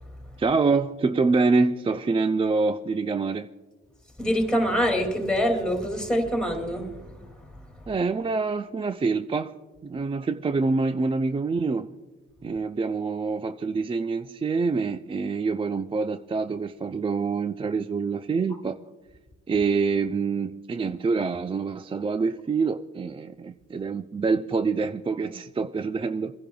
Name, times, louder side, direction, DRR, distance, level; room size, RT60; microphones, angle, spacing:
voice 1, 0.4-3.5 7.9-9.5 9.8-11.9 12.4-18.8 19.5-26.3, right 4 dB, 20° right, 0.3 m, -26 dB
voice 2, 4.2-6.9, equal, 5° left, 2.4 m, -24 dB
29.0 x 10.5 x 2.3 m
cardioid pair, 90°, 30 cm